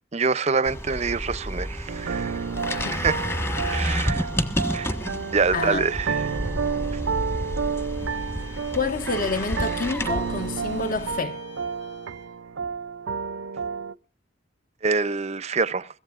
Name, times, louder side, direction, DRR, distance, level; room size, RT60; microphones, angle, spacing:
voice 1, 0.1-2.5 2.9-3.2 3.6-4.3 4.7-5.0 5.3-6.4 14.8-15.9, right 4 dB, 35° right, 0.6 m, -26 dB
sound 1, 0.7-11.2, equal, 15° left, 1.4 m, -30 dB
sound 2, 1.9-13.9, right 5 dB, 75° right, 0.6 m, -31 dB
voice 2, 5.5-5.9 8.7-11.4, left 3 dB, 45° left, 1.2 m, -28 dB
Bowed string instrument, 7.7-12.4, left 6 dB, 70° left, 4.2 m, -51 dB
22.0 x 16.0 x 2.5 m
head